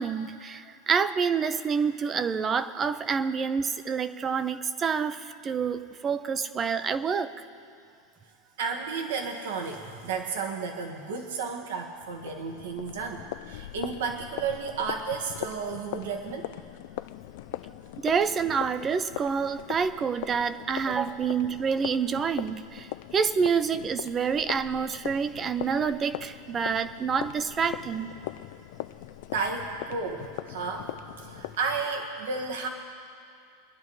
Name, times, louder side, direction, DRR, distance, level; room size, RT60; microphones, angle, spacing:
voice 1, 0.0-7.3 18.0-28.1, right 6 dB, 20° right, 13 dB, 0.5 m, -28 dB
voice 2, 8.6-16.5 20.9-21.1 29.3-32.7, right 5 dB, 85° right, 1 dB, 1.4 m, -33 dB
sound 1, 12.0-31.6, left 15 dB, 60° left, 0.3 m, -41 dB
24.5 x 11.0 x 3.2 m, 2.4 s
supercardioid pair, 160°, 0 cm